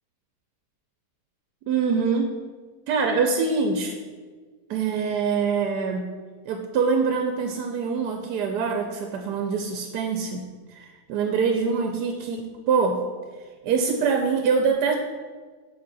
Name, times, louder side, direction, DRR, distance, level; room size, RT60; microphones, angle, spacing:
voice 1, 1.7-2.3 2.9-3.9 4.7-6.0 6.5-10.4 10.7-13.0 13.6-14.9, right 5 dB, 80° right, 4 dB, 1.2 m, -24 dB
7.8 x 5.1 x 4.0 m, 1.5 s
omnidirectional pair, 1.8 m